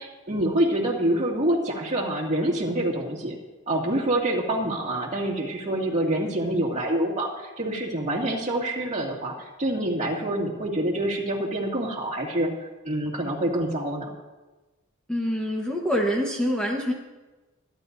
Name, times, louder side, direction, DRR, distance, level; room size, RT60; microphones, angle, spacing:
voice 1, 0.0-3.4 3.7-14.1, right 1 dB, 35° right, -2 dB, 2.3 m, -26 dB
voice 2, 15.1-16.9, equal, 5° left, -1 dB, 1.2 m, -25 dB
24.5 x 11.0 x 2.7 m, 1.2 s
head